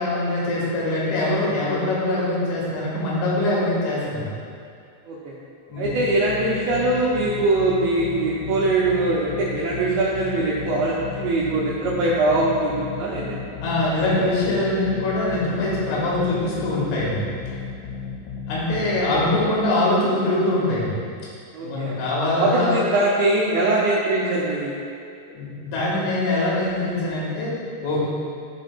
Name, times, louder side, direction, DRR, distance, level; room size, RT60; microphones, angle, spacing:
voice 1, 0.0-4.3 5.7-5.8 13.6-17.3 18.5-21.0 21.6-22.9 25.3-27.5 27.8-28.1, left 2 dB, 70° left, -6 dB, 3.5 m, -23 dB
sound 1, 5.8-19.5, left 5 dB, 85° left, 2.5 m, -34 dB
voice 2, 5.8-13.4 21.5-22.0 22.4-24.7, right 2 dB, 90° right, -6 dB, 2.5 m, -22 dB
14.0 x 5.0 x 2.2 m, 2.4 s
omnidirectional pair, 6.0 m